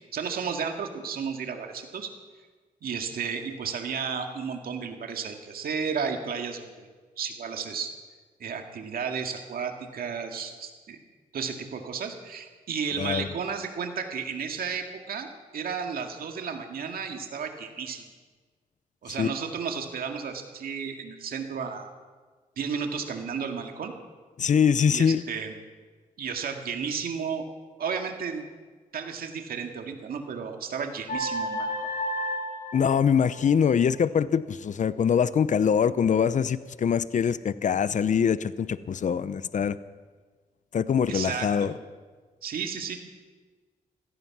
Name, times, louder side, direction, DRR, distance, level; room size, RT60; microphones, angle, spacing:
voice 1, 0.1-2.1 2.8-6.9 7.2-7.9 8.4-11.0 11.3-15.3 15.5-18.0 19.0-21.9 22.6-23.9 24.9-25.6 26.2-27.5 27.8-28.4 28.9-31.9 41.1-41.8 42.4-43.0, right 6 dB, 70° right, 4 dB, 2.1 m, -33 dB
voice 2, 24.4-25.2 32.7-39.8 40.7-41.7, left 7 dB, 50° left, 16 dB, 0.7 m, -23 dB
sound 1, 31.1-33.7, equal, 70° left, 5.4 m, -32 dB
16.5 x 14.5 x 6.1 m, 1.4 s
cardioid pair, 65°, 16 cm